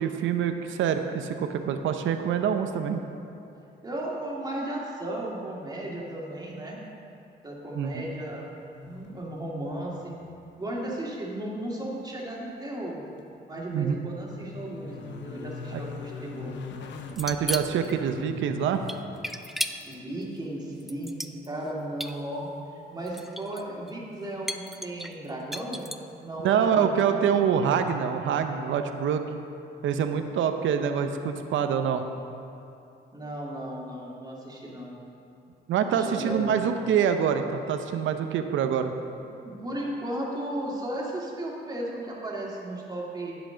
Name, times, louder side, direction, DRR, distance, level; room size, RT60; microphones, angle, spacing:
voice 1, 0.0-3.0 7.7-8.0 13.7-14.1 15.7-15.8 17.2-18.8 26.4-29.2 29.8-32.0 35.7-38.9, right 8 dB, 75° right, 7 dB, 0.7 m, -25 dB
voice 2, 3.8-6.8 7.4-8.5 8.8-10.2 10.6-13.0 13.5-16.6 19.8-22.5 22.9-25.9 26.2-27.1 33.1-35.0 35.9-36.8 39.3-43.4, right 1 dB, 20° right, -3 dB, 2.2 m, -35 dB
sound 1, 8.4-9.4 9.7-10.5 10.8-10.9 13.4-19.2 22.1-22.2, left 5 dB, 65° left, 0.8 m, -42 dB
sound 2, 17.1-17.9 18.9-19.9 20.8-21.7 22.0-22.1 23.1-23.6 23.9-24.0 24.5-26.1, equal, ahead, 0.4 m, -34 dB
11.0 x 8.1 x 3.8 m, 2.6 s
cardioid pair, 90°, 20 cm